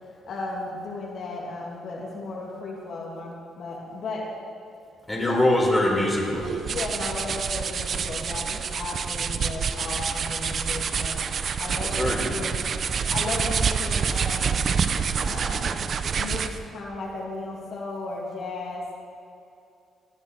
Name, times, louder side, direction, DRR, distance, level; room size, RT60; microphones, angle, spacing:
voice 1, 0.2-4.2 5.2-5.4 6.7-11.3 11.6-12.6 13.1-14.7 15.2-15.7 16.2-18.9, left 3 dB, 60° left, -4 dB, 2.6 m, -35 dB
voice 2, 5.1-6.5 11.8-12.5, left 1 dB, 10° left, -2 dB, 3.7 m, -23 dB
sound 1, 6.3-16.7, right 6 dB, 50° right, 0.6 m, -27 dB
18.5 x 9.7 x 4.8 m, 2.6 s
cardioid pair, 90°, 0 cm